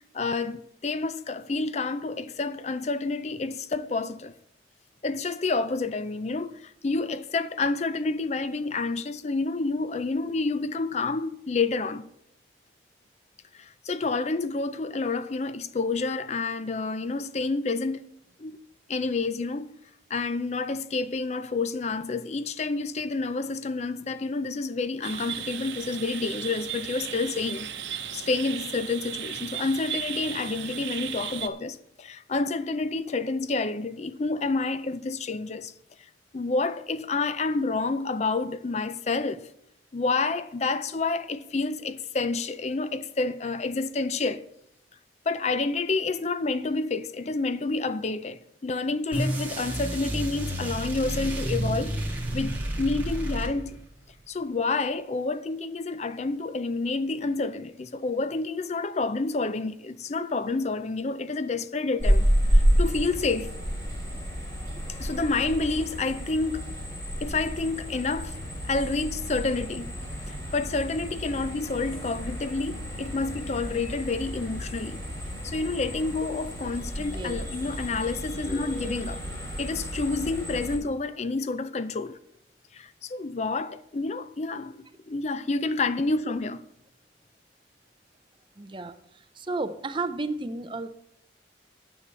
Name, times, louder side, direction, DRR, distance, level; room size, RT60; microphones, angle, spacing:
voice 1, 0.1-4.3 5.0-12.1 13.5-18.1 18.4-18.6 18.9-19.7 20.1-27.7 28.1-35.7 36.3-39.4 39.9-44.4 45.3-53.8 54.3-63.5 65.0-66.7 67.2-68.4 68.6-69.9 70.3-75.0 75.4-79.2 79.6-82.2 82.7-86.6, left 3 dB, 35° left, 0.5 m, -29 dB
sound 1, 25.0-31.5, right 9 dB, 80° right, 0.9 m, -36 dB
sound 2, 49.1-53.9, right 1 dB, 10° right, 2.2 m, -30 dB
sound 3, 62.0-80.8, equal, 20° left, 5.6 m, -30 dB
voice 2, 77.0-77.4 88.6-90.9, right 3 dB, 25° right, 0.6 m, -33 dB
9.7 x 7.0 x 7.6 m
head